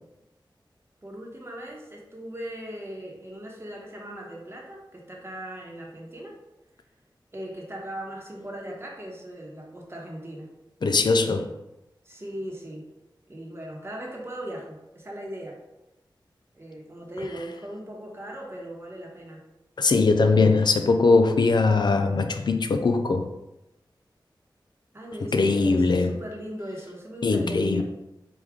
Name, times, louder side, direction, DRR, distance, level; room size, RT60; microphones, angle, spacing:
voice 1, 1.0-6.3 7.3-10.5 11.2-11.6 12.0-12.8 13.3-15.6 16.5-19.4 24.9-27.8, right 1 dB, 30° right, 1.0 m, -38 dB
voice 2, 10.8-11.5 19.8-23.3 25.3-26.1 27.2-27.8, left 3 dB, 60° left, 0.4 m, -21 dB
4.7 x 2.3 x 3.6 m
wide cardioid pair, 75°, 8 cm